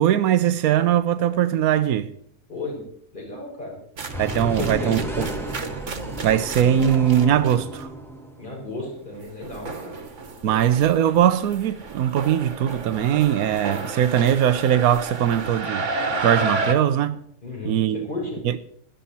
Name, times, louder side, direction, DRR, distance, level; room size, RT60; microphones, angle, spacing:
voice 1, 0.0-2.1 4.2-5.0 6.2-7.9 10.4-15.9 16.2-17.2 17.7-18.1 18.4-18.6, right 10 dB, 85° right, 1.2 m, -20 dB
voice 2, 2.5-2.8 3.1-3.8 4.6-5.3 8.4-10.0 10.4-10.6 17.4-18.4, left 2 dB, 35° left, 4.7 m, -33 dB
sound 1, 4.0-7.8 9.1-16.7, right 3 dB, 55° right, 1.7 m, -31 dB
sound 2, 4.1-8.6, right 1 dB, ahead, 1.4 m, -32 dB
16.5 x 12.5 x 4.2 m
omnidirectional pair, 1.5 m